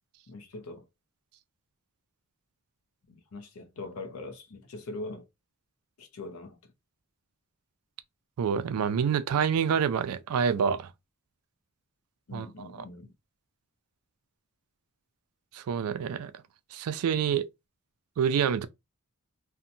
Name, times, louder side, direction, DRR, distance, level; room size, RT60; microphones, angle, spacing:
voice 1, 0.3-0.9 3.1-5.3 6.0-6.6 12.3-13.1, left 2 dB, 75° left, 0.6 m, -42 dB
voice 2, 8.4-10.9 12.3-12.5 15.5-16.3 16.7-17.4 18.2-18.7, right 7 dB, 80° right, 0.3 m, -27 dB
2.7 x 2.1 x 2.6 m
head